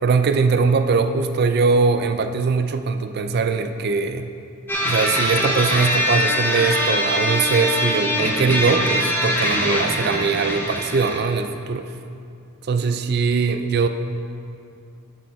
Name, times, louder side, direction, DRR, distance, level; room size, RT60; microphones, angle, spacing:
voice 1, 0.0-4.3 4.8-11.9 12.7-13.9, right 4 dB, 45° right, 8 dB, 0.3 m, -21 dB
sound 1, 4.7-11.2, left 1 dB, 10° left, 0.6 m, -22 dB
7.6 x 6.5 x 4.0 m, 2.5 s
head